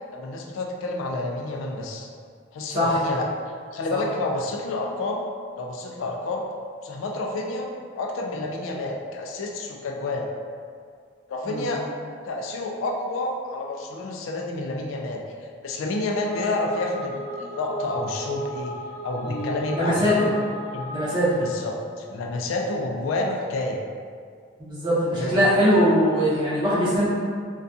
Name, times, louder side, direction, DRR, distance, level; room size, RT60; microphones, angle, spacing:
voice 1, 0.1-2.1 2.5-3.3 3.7-5.3 5.6-6.4 6.8-7.7 8.0-10.3 11.3-11.9 12.2-15.2 15.6-18.7 19.0-20.1 20.7-21.0 21.4-23.8 25.1-25.6, left 2 dB, 80° left, 1 dB, 0.3 m, -29 dB
sound 1, 15.9-21.7, equal, 70° right, 1.0 m, -36 dB
voice 2, 19.2-20.3 20.9-21.5 24.6-27.1, equal, 25° right, -10 dB, 0.7 m, -21 dB
2.3 x 2.2 x 2.6 m, 2.1 s
head